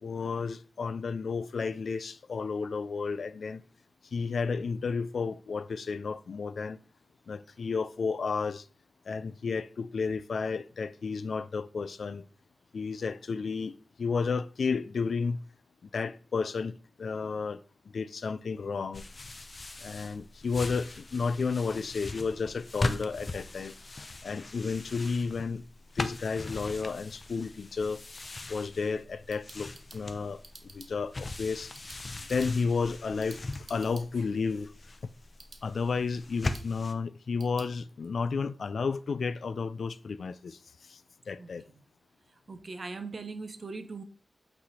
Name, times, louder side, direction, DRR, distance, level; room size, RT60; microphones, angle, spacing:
voice 1, 0.0-3.6 4.1-6.8 7.3-8.7 9.1-12.2 12.7-15.4 15.8-17.6 17.9-19.0 19.8-23.7 24.2-25.6 26.0-28.0 28.5-30.4 30.7-31.7 32.3-34.7 35.0-35.1 35.6-41.0 41.3-41.6, left 5 dB, 75° left, 0.4 m, -32 dB
sound 1, 18.9-36.9, left 2 dB, 40° left, 0.6 m, -40 dB
sound 2, 29.0-37.7, right 3 dB, 65° right, 1.2 m, -55 dB
voice 2, 42.5-44.0, right 3 dB, 50° right, 0.8 m, -40 dB
8.4 x 3.2 x 4.2 m
wide cardioid pair, 90°, 0 cm